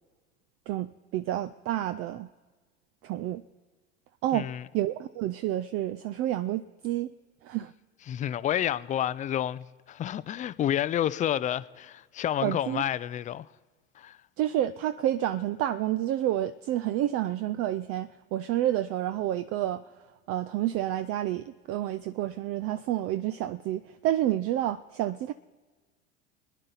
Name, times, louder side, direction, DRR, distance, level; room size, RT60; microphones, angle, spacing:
voice 1, 0.7-2.3 3.0-3.4 4.2-4.5 4.7-7.1 7.4-7.7 12.4-12.8 14.4-19.8 20.3-25.3, right 13 dB, 45° right, 0.4 m, -29 dB
voice 2, 4.3-4.6 8.1-13.5 14.0-14.2, left 11 dB, 25° left, 0.4 m, -29 dB
24.5 x 9.9 x 4.0 m
hypercardioid pair, 85°, 34 cm